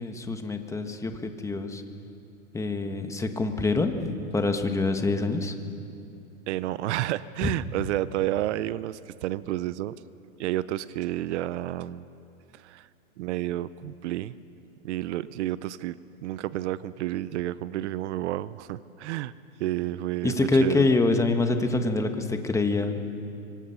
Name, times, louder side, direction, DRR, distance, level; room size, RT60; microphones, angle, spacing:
voice 1, 0.0-1.8 2.5-5.5 7.4-7.5 20.2-23.0, left 3 dB, 5° left, 6 dB, 1.4 m, -25 dB
voice 2, 6.5-9.9 10.4-12.0 12.5-12.9 13.2-14.3 14.8-19.3 19.6-20.9, right 14 dB, 55° right, 17 dB, 0.7 m, -30 dB
25.0 x 24.5 x 5.8 m, 2.7 s
hypercardioid pair, 135°, 43 cm